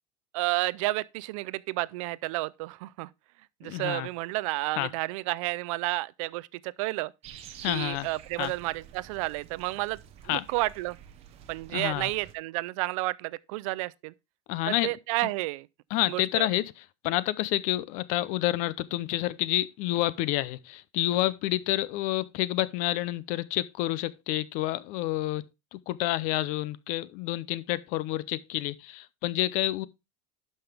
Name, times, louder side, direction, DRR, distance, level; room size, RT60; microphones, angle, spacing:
voice 1, 0.3-3.1 3.6-7.1 7.7-10.0 10.3-11.0 11.5-14.1 14.7-15.7 16.1-16.5, right 20 dB, 70° right, 0.5 m, -31 dB
voice 2, 3.6-4.1 4.8-4.9 7.6-8.1 8.4-8.5 10.3-10.4 11.7-12.1 14.5-14.9 15.9-16.6 17.0-25.4 25.7-29.9, left 16 dB, 45° left, 0.5 m, -29 dB
sound 1, 7.2-12.3, right 9 dB, 35° right, 1.0 m, -49 dB
11.5 x 5.5 x 3.4 m
cardioid pair, 165°, 17 cm